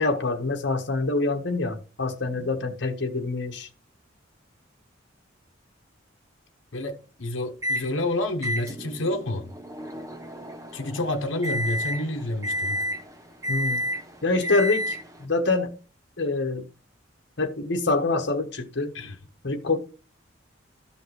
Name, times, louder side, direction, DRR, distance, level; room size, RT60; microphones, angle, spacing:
voice 1, 0.0-3.7 13.5-13.8 14.2-15.7 16.2-16.7 17.4-18.9 19.4-19.8, left 3 dB, 60° left, 1.3 m, -25 dB
voice 2, 6.7-9.5 10.7-12.9 18.9-19.2, left 1 dB, 85° left, 1.0 m, -29 dB
Microwave oven, 7.6-7.9 8.4-15.3, equal, 15° right, 0.8 m, -31 dB
13.0 x 5.7 x 3.2 m
head